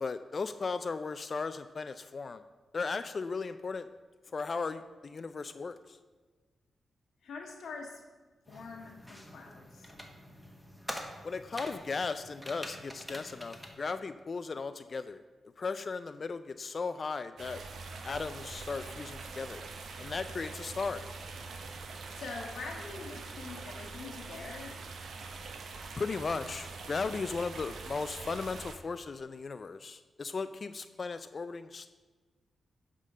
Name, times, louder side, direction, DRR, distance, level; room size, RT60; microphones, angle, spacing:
voice 1, 0.0-2.4 2.7-3.9 4.3-6.0 11.2-15.2 15.6-17.6 18.0-19.6 20.0-21.0 26.0-31.9, left 4 dB, 50° left, 11 dB, 0.3 m, -36 dB
voice 2, 7.2-8.0 8.5-9.9 22.1-24.8 29.2-29.3, left 4 dB, 85° left, 0 dB, 1.2 m, -44 dB
sound 1, 8.5-13.8, equal, ahead, 1.3 m, -45 dB
sound 2, 17.4-28.7, right 4 dB, 80° right, 0.8 m, -44 dB
10.0 x 3.7 x 6.6 m, 1.3 s
cardioid pair, 65°, 0 cm